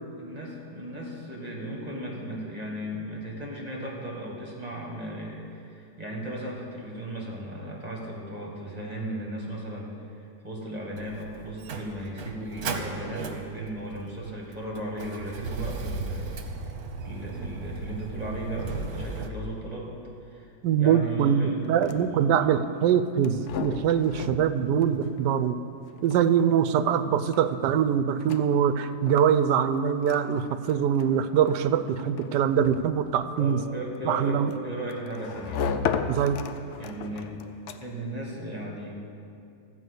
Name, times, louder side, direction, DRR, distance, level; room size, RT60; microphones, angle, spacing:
voice 1, 0.2-19.9 20.2-20.5 20.8-22.5 33.4-35.6 36.8-37.3 37.8-38.9, right 1 dB, 25° right, -2 dB, 1.9 m, -36 dB
Motor vehicle (road), 11.0-19.3, right 4 dB, 65° right, 1.4 m, -36 dB
voice 2, 20.6-25.6 26.0-33.6 34.0-34.5 36.1-36.4, right 8 dB, 80° right, 10 dB, 1.2 m, -23 dB
sound 1, 21.6-38.1, left 6 dB, 75° left, 0.6 m, -37 dB
14.0 x 5.2 x 8.2 m, 2.5 s
omnidirectional pair, 1.8 m